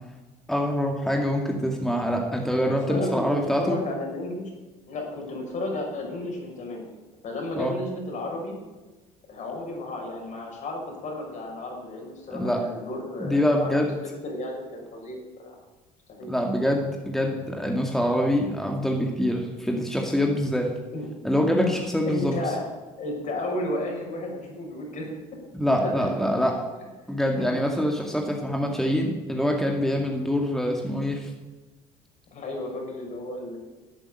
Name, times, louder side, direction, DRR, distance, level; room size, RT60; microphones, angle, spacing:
voice 1, 0.5-3.8 7.6-7.7 12.3-12.6 13.2-14.0 16.3-20.7 21.2-22.3 25.5-26.5 27.1-31.3, equal, ahead, 1 dB, 2.2 m, -25 dB
voice 2, 2.7-4.5 4.9-6.8 7.2-8.6 9.3-13.8 14.2-15.5 16.1-16.3 20.9-21.1 22.1-22.6 23.0-25.1 25.8-26.1 27.3-27.5 32.3-33.6, left 1 dB, 55° left, 0 dB, 6.0 m, -33 dB
11.5 x 8.7 x 9.1 m, 1.2 s
supercardioid pair, 75°, 15 cm